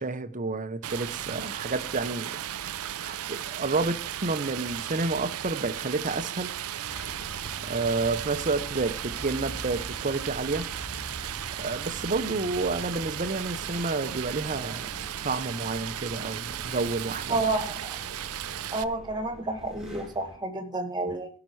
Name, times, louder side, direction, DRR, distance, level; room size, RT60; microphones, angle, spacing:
voice 1, 0.0-2.4 3.0-6.5 7.6-10.6 11.6-14.9 15.2-17.4, right 3 dB, 35° right, 0.9 m, -30 dB
Stream, 0.8-18.8, right 11 dB, 75° right, 0.5 m, -35 dB
sound 1, 6.9-20.4, equal, ahead, 2.3 m, -45 dB
voice 2, 17.3-17.7 18.7-21.3, right 2 dB, 20° right, 1.8 m, -29 dB
16.5 x 6.1 x 4.7 m
head